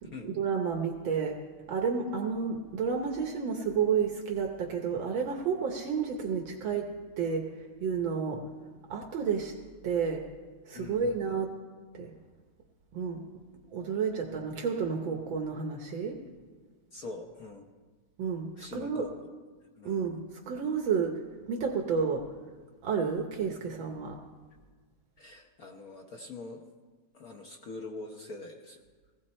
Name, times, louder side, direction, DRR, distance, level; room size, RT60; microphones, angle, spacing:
voice 1, 0.0-1.4 1.7-6.9 7.2-8.4 8.9-9.5 9.8-10.2 10.7-11.5 11.9-12.1 12.9-13.2 13.7-16.2 18.2-19.0 19.8-21.2 21.5-22.3 22.8-24.2, right 6 dB, 75° right, 2 dB, 1.8 m, -31 dB
voice 2, 10.7-11.4 16.9-17.6 18.6-19.1 19.7-20.0 25.2-26.6 27.1-28.8, left 3 dB, 55° left, 2 dB, 1.3 m, -43 dB
18.0 x 16.0 x 4.3 m, 1.5 s
omnidirectional pair, 2.2 m